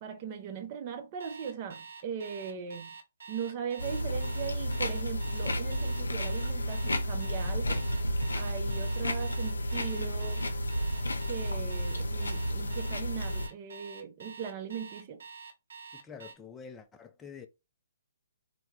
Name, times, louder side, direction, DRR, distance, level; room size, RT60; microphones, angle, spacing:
voice 1, 0.0-3.0 3.3-7.8 8.4-10.5 11.3-15.2, right 7 dB, 35° right, 0.6 m, -39 dB
Alarm, 1.2-16.4, right 5 dB, 70° right, 0.7 m, -47 dB
sound 1, 3.8-13.5, equal, 85° left, 0.6 m, -32 dB
voice 2, 15.9-17.5, left 6 dB, 10° left, 0.4 m, -47 dB
3.4 x 2.2 x 2.9 m
hypercardioid pair, 140°, 0 cm